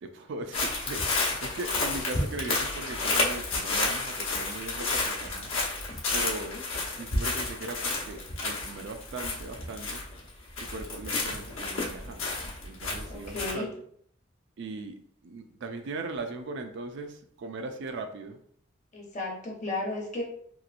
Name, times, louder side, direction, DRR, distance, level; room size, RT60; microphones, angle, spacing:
voice 1, 0.0-5.5 6.1-6.5 7.0-10.0 10.6-12.2 12.6-13.7 14.6-18.4, right 2 dB, 60° right, 6 dB, 0.4 m, -39 dB
sound 1, 0.5-10.3 10.6-13.5, left 3 dB, 70° left, 1.0 m, -31 dB
voice 2, 6.3-6.6 13.1-13.7 18.9-20.2, left 2 dB, 35° left, -2 dB, 0.9 m, -34 dB
3.0 x 3.0 x 2.4 m, 0.64 s
head